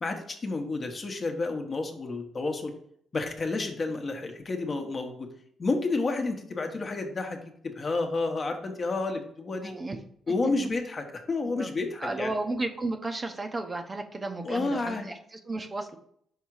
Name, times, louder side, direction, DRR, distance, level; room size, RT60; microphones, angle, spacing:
voice 1, 0.0-2.7 3.1-5.3 5.6-7.4 7.6-9.7 10.3-12.3 14.4-15.1, left 3 dB, 35° left, 4 dB, 1.0 m, -30 dB
voice 2, 9.6-10.0 10.3-10.4 11.4-11.7 12.0-16.0, right 2 dB, 25° right, 5 dB, 0.7 m, -33 dB
5.6 x 3.6 x 4.7 m, 0.67 s
cardioid pair, 90°, 0 cm